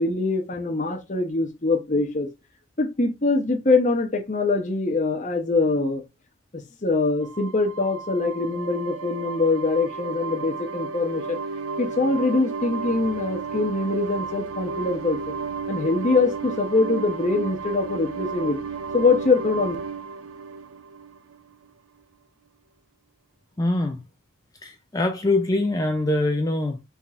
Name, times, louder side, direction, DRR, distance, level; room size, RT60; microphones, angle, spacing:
voice 1, 0.0-2.3 2.8-6.0 6.8-11.4 11.8-15.2 15.7-18.6 18.9-19.8, left 3 dB, 35° left, 0.8 m, -23 dB
sound 1, 7.2-21.6, right 4 dB, 80° right, 0.5 m, -33 dB
voice 2, 23.6-24.0 24.6-26.8, left 2 dB, 15° left, 0.4 m, -23 dB
5.6 x 3.5 x 2.4 m
head